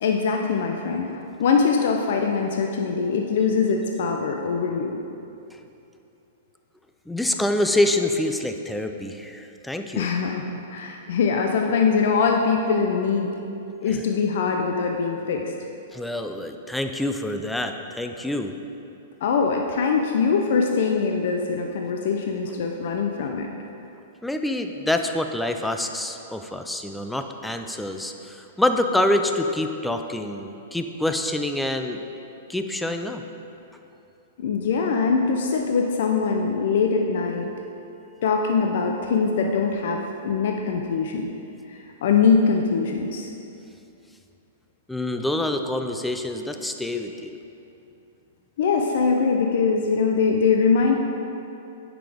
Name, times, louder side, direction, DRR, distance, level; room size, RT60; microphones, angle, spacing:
voice 1, 0.0-5.0 10.0-13.3 13.8-15.5 19.2-23.5 34.4-37.5 38.2-41.3 41.7-43.3 48.6-50.9, left 5 dB, 65° left, 2 dB, 0.5 m, -22 dB
voice 2, 7.1-10.1 13.8-14.0 15.9-18.5 24.2-32.0 32.5-33.2 44.9-47.4, left 1 dB, 5° left, 6 dB, 0.4 m, -26 dB
8.6 x 5.9 x 3.5 m, 2.8 s
hypercardioid pair, 135°, 0 cm